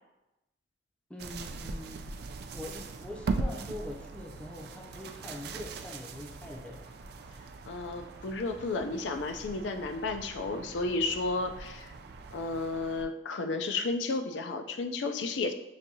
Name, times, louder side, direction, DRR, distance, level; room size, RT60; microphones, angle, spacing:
voice 1, 1.1-2.0 2.5-6.8, left 1 dB, 5° left, -1 dB, 0.4 m, -43 dB
sound 1, 1.2-13.0, right 3 dB, 60° right, 0.4 m, -40 dB
voice 2, 7.7-11.9 12.3-15.5, left 3 dB, 85° left, 7 dB, 0.4 m, -32 dB
6.7 x 2.6 x 2.7 m, 0.93 s
head